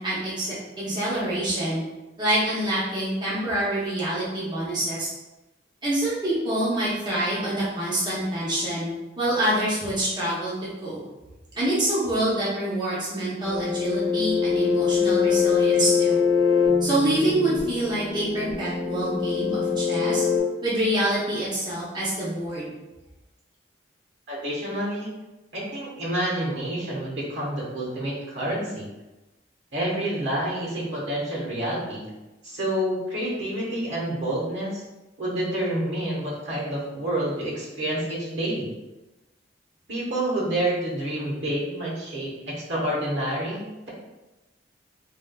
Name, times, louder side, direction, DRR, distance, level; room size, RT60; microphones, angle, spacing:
voice 1, 0.0-1.8 2.2-5.1 5.8-8.9 9.2-10.5 10.8-11.0 11.5-16.2 16.8-20.2 20.6-22.7, right 1 dB, 25° right, -8 dB, 0.7 m, -26 dB
sound 1, 13.4-20.4, left 6 dB, 70° left, 0.8 m, -23 dB
voice 2, 24.3-25.1 25.5-28.9 29.7-32.0 32.4-34.8 35.2-38.7 39.9-43.9, right 1 dB, 70° right, -5 dB, 1.1 m, -28 dB
3.4 x 2.3 x 2.2 m, 1.1 s
head